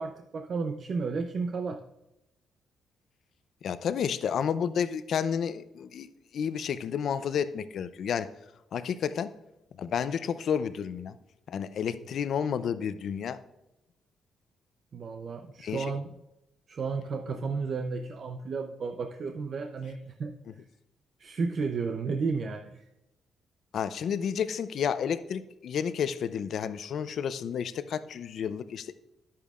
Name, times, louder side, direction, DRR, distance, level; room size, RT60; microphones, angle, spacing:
voice 1, 0.0-1.8 14.9-16.1 16.7-20.3 21.2-22.8, right 4 dB, 50° right, 6 dB, 0.6 m, -33 dB
voice 2, 3.6-6.1 6.3-8.3 8.7-9.3 9.8-11.1 11.5-13.4 15.6-15.9 23.7-28.9, left 7 dB, 65° left, 13 dB, 0.5 m, -31 dB
10.5 x 8.5 x 2.4 m, 0.92 s
cardioid pair, 90°, 0 cm